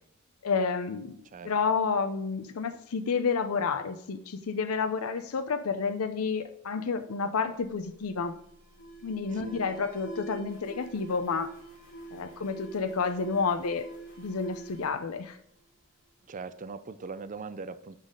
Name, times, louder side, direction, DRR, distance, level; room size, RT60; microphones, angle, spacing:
voice 1, 0.4-1.2 1.4-8.4 9.0-11.5 12.1-13.9 14.2-15.4, left 5 dB, 85° left, 9 dB, 0.6 m, -30 dB
Alarm, 7.5-16.1, right 2 dB, 60° left, 3.3 m, -47 dB
voice 2, 16.2-18.0, right 4 dB, 35° right, 13 dB, 0.4 m, -41 dB
11.5 x 4.0 x 3.7 m, 0.70 s
head